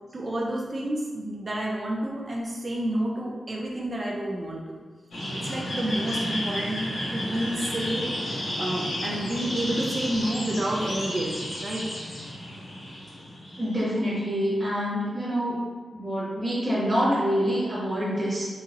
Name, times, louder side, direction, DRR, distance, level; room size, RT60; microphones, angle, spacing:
voice 1, 0.1-4.8 5.3-6.8 7.1-11.8, right 1 dB, 35° right, -2 dB, 0.4 m, -30 dB
sound 1, 5.1-13.9, equal, 80° left, 1.1 m, -32 dB
voice 2, 13.6-15.6 15.9-18.5, equal, 15° right, -10 dB, 1.1 m, -26 dB
3.9 x 2.7 x 2.5 m, 1.4 s
wide cardioid pair, 115°, 0 cm